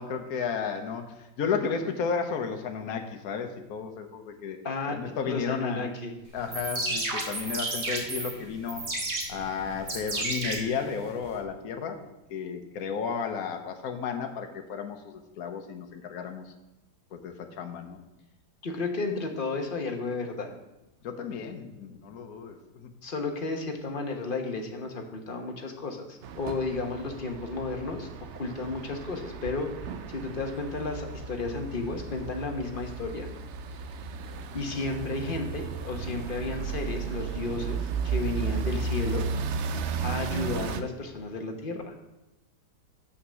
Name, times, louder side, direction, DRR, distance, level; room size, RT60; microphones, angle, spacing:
voice 1, 0.0-4.6 4.9-5.9 6.3-8.8 9.3-16.5 17.1-18.0 21.0-22.9, left 6 dB, 60° left, 5 dB, 1.4 m, -33 dB
voice 2, 4.6-6.1 18.6-20.5 23.0-28.1 28.3-29.7 30.1-33.3 34.5-39.2 40.0-41.9, left 3 dB, 35° left, 3 dB, 1.1 m, -33 dB
sound 1, 6.4-11.4, right 2 dB, 55° right, 1.9 m, -33 dB
sound 2, 26.2-40.8, right 5 dB, 70° right, 0.6 m, -34 dB
8.3 x 5.8 x 6.3 m, 0.99 s
omnidirectional pair, 1.8 m